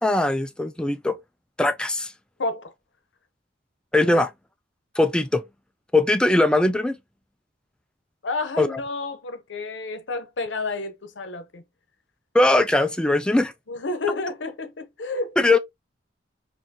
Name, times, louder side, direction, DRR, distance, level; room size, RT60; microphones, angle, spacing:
voice 1, 0.0-1.2 1.6-2.1 3.9-4.3 5.0-5.4 5.9-7.0 8.6-8.7 12.3-13.5 15.4-15.6, left 2 dB, 5° left, 0.3 m, -20 dB
voice 2, 2.4-2.7 4.1-4.3 8.2-11.6 13.7-15.4, left 3 dB, 80° left, 0.8 m, -30 dB
4.3 x 2.6 x 2.8 m
head